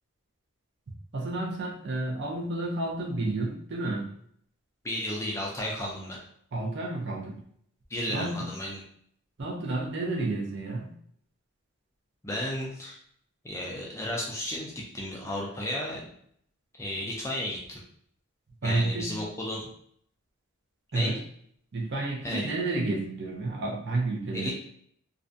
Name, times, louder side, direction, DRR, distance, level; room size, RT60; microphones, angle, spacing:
voice 1, 1.1-4.1 6.5-7.4 8.1-8.5 9.4-10.9 18.6-19.2 20.9-21.2 21.7-24.5, right 2 dB, 55° right, -1 dB, 0.5 m, -30 dB
voice 2, 4.8-6.2 7.9-8.8 12.2-13.0 13.4-16.0 16.7-17.8 18.6-19.7 20.9-21.1 22.2-22.5 24.3-24.5, left 1 dB, 15° left, -3 dB, 0.3 m, -33 dB
2.4 x 2.1 x 2.5 m, 0.66 s
head